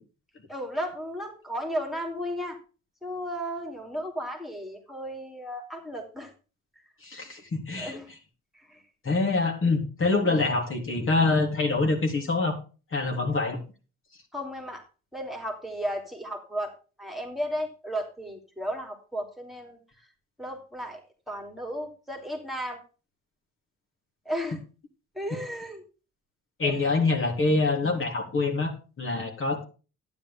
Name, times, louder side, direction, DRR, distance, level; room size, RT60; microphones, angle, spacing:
voice 1, 0.5-2.6 3.0-6.3 7.8-8.1 8.7-8.8 10.3-10.4 14.3-14.8 15.1-16.7 17.0-19.8 20.4-21.0 21.3-22.8 24.2-24.6 25.1-25.8 26.6-26.8 27.9-28.1 29.2-29.3, equal, ahead, 2 dB, 3.2 m, -34 dB
voice 2, 7.0-8.0 9.0-12.6 12.9-13.6 26.6-28.7 29.0-29.6, left 3 dB, 45° left, 2 dB, 3.6 m, -25 dB
11.5 x 10.0 x 3.6 m, 0.34 s
cardioid pair, 90°, 30 cm